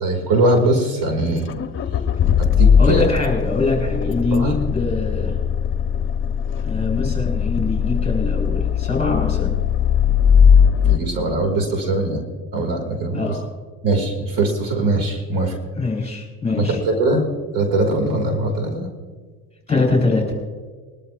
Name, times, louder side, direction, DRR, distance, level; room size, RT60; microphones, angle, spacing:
voice 1, 0.0-1.5 2.4-3.1 4.3-4.6 5.2-5.4 10.8-12.2 12.5-13.4 13.8-15.6 16.6-18.9, right 2 dB, 60° right, 4 dB, 2.3 m, -21 dB
Accelerating revving vroom, 1.4-11.0, left 7 dB, 35° left, 0.9 m, -19 dB
voice 2, 2.8-5.4 6.6-9.5 13.1-13.4 15.8-16.8 19.7-20.4, left 3 dB, 15° left, 0 dB, 4.4 m, -23 dB
21.5 x 12.5 x 2.5 m, 1.5 s
supercardioid pair, 100°, 38 cm